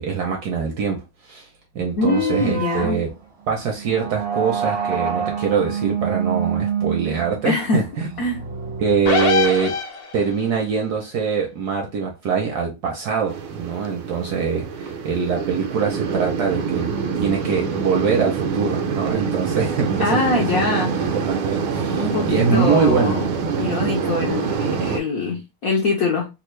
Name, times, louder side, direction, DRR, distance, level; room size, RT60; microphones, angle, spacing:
voice 1, 0.0-1.5 1.7-3.1 3.5-8.1 8.8-9.8 10.1-23.2, right 5 dB, 70° right, 1.0 m, -23 dB
voice 2, 2.0-3.0 7.4-7.8 8.2-8.4 20.0-20.9 22.0-23.3 23.6-26.3, left 3 dB, 70° left, 0.8 m, -23 dB
sound 1, 2.0-9.8, right 7 dB, 30° right, 0.6 m, -27 dB
sound 2, 9.1-10.4, left 4 dB, 50° left, 1.3 m, -22 dB
sound 3, 13.3-25.0, right 5 dB, 85° right, 1.4 m, -25 dB
3.4 x 2.4 x 3.1 m
omnidirectional pair, 2.2 m